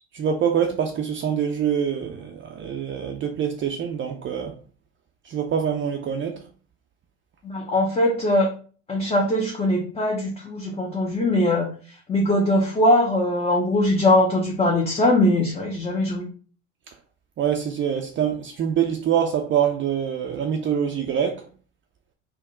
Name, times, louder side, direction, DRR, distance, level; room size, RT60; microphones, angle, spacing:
voice 1, 0.1-4.5 5.3-6.4 17.4-21.4, right 8 dB, 35° right, 0.5 m, -25 dB
voice 2, 7.4-8.5 8.9-11.7 12.1-16.3, left 1 dB, 15° left, 0.7 m, -21 dB
3.6 x 2.2 x 3.7 m
hypercardioid pair, 70°, 36 cm